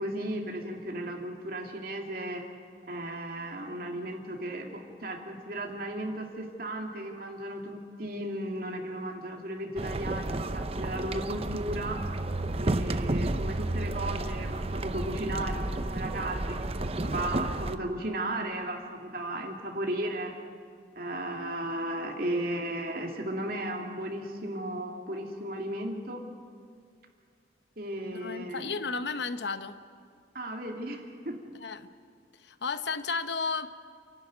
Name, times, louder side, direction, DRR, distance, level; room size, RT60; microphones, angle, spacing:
voice 1, 0.0-2.5 2.8-12.0 12.5-20.4 21.0-26.2 27.8-28.8 30.3-31.4, right 1 dB, 50° right, 2 dB, 2.6 m, -35 dB
sound 1, 9.8-17.8, right 2 dB, 35° right, 0.7 m, -31 dB
voice 2, 28.1-29.8 31.6-31.9 32.4-33.7, left 4 dB, 70° left, 11 dB, 0.9 m, -33 dB
28.5 x 12.0 x 9.4 m, 2.1 s
head